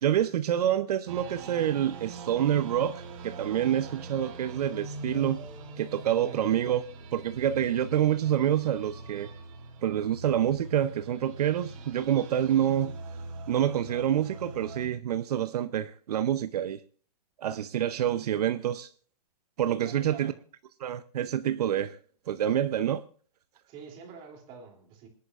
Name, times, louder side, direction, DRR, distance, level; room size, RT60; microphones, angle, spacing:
voice 1, 0.0-5.4 5.8-6.8 7.1-9.3 9.8-12.9 13.5-16.8 17.4-18.9 19.6-20.3 20.8-22.0 22.3-23.0, right 10 dB, 75° right, 0.6 m, -27 dB
sound 1, 1.1-14.9, right 3 dB, 55° right, 2.2 m, -43 dB
voice 2, 19.8-20.4 23.7-25.1, right 6 dB, 25° right, 2.8 m, -46 dB
26.5 x 9.5 x 2.4 m
hypercardioid pair, 160°, 20 cm